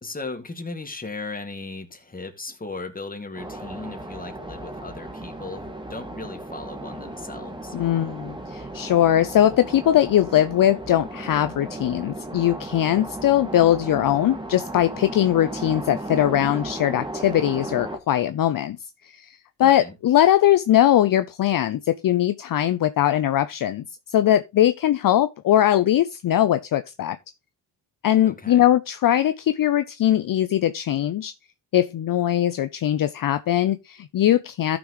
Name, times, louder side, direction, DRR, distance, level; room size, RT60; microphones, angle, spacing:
voice 1, 0.0-7.8 19.6-19.9 28.2-28.7, left 3 dB, 20° left, 2.2 m, -36 dB
sound 1, 3.3-18.0, right 2 dB, 10° right, 1.9 m, -35 dB
voice 2, 7.7-18.8 19.0-27.2 28.0-31.3 31.7-34.8, left 12 dB, 50° left, 0.6 m, -21 dB
13.5 x 6.1 x 3.1 m
cardioid pair, 80°, 42 cm